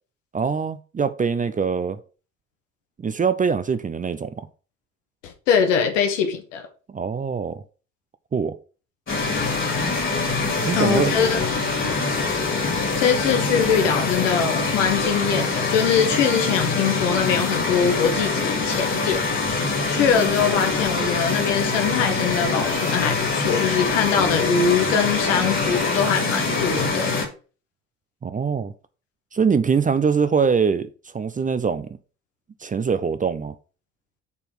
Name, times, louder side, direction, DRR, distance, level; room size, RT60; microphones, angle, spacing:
voice 1, 0.3-2.0 3.0-4.5 6.9-7.6 8.3-8.6 10.4-11.2 28.2-28.7 29.3-30.9 31.1-31.9 32.6-33.5, right 6 dB, 20° right, 0.6 m, -23 dB
voice 2, 5.2-6.7 10.7-11.4 13.0-19.2 19.9-27.1, left 7 dB, 70° left, 1.4 m, -22 dB
sound 1, 9.1-27.3, left 3 dB, 30° left, 2.7 m, -24 dB
7.1 x 4.4 x 5.8 m
figure-of-eight pair, 50°, 38 cm